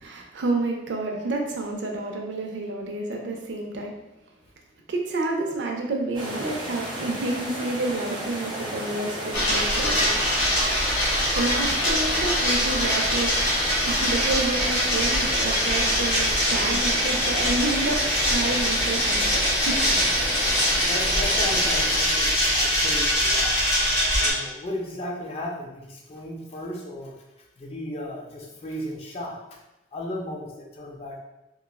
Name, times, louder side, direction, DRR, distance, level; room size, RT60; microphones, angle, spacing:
voice 1, 0.0-3.9 4.9-10.3 10.8-11.1 11.3-13.3 13.9-18.0 18.3-19.9, right 2 dB, 75° right, 1 dB, 0.5 m, -29 dB
sound 1, 6.1-22.0, right 1 dB, 25° right, 1.1 m, -33 dB
sound 2, 9.3-24.3, equal, 85° left, 1.2 m, -23 dB
voice 2, 20.8-23.7 24.2-27.1 27.6-29.4 29.9-31.2, left 1 dB, 35° left, -1 dB, 0.4 m, -35 dB
3.0 x 2.3 x 2.2 m, 0.96 s
head